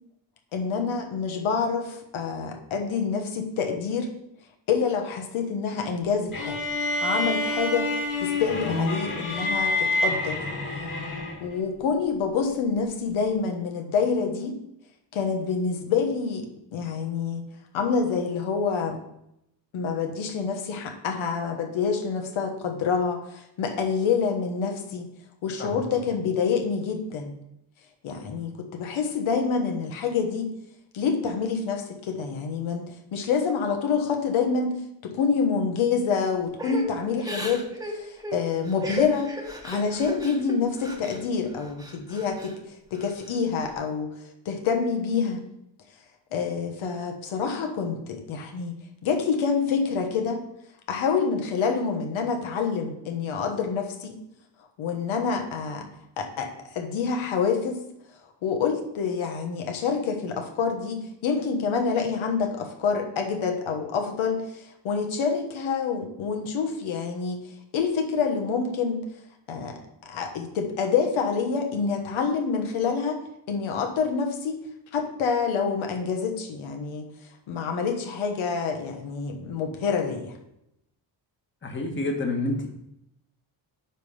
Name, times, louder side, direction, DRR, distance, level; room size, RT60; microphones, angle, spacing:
voice 1, 0.5-4.1 4.7-6.6 7.0-7.9 8.2-10.4 11.4-14.6 15.1-17.5 17.7-19.0 19.7-25.1 25.4-27.4 28.0-30.5 30.9-34.7 35.0-39.3 39.6-44.1 44.4-45.4 46.3-50.4 50.9-54.2 54.8-55.9 56.2-57.8 58.4-67.4 67.7-69.0 69.5-73.2 73.5-74.6 74.9-77.1 77.5-80.3, left 5 dB, 85° left, 3 dB, 1.3 m, -27 dB
sound 1, 6.3-11.6, left 2 dB, 40° left, 2.1 m, -27 dB
Crying sobbing / Breathing, 36.6-41.2 41.6-42.5 42.9-43.7, equal, 10° right, 1.1 m, -36 dB
voice 2, 81.6-82.7, left 2 dB, 25° left, 1 dB, 1.3 m, -28 dB
9.9 x 3.4 x 5.5 m, 0.81 s
cardioid pair, 130°, 47 cm